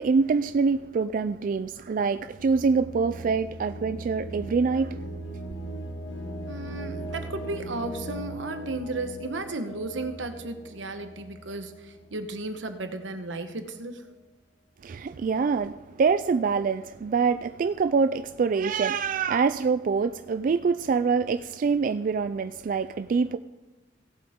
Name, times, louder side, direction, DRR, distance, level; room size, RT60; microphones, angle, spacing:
voice 1, 0.0-5.0 14.8-23.4, right 5 dB, 45° right, 0.3 m, -25 dB
sound 1, 2.4-12.2, right 1 dB, 75° left, 1.2 m, -39 dB
voice 2, 6.5-14.1, right 2 dB, 85° right, 1.1 m, -34 dB
17.0 x 7.8 x 3.6 m
head